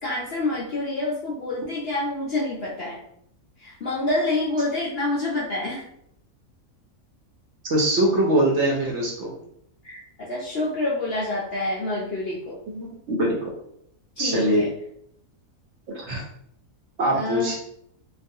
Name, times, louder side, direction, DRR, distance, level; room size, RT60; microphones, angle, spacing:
voice 1, 0.0-3.0 3.6-5.8 9.8-10.0 10.3-12.6 14.2-14.7 17.1-17.6, left 2 dB, 65° left, -5 dB, 0.6 m, -27 dB
voice 2, 7.7-9.3 12.7-13.4 14.2-14.7 15.9-16.2 17.0-17.6, right 1 dB, 65° right, -2 dB, 0.8 m, -22 dB
2.4 x 2.3 x 2.6 m, 0.72 s
omnidirectional pair, 1.5 m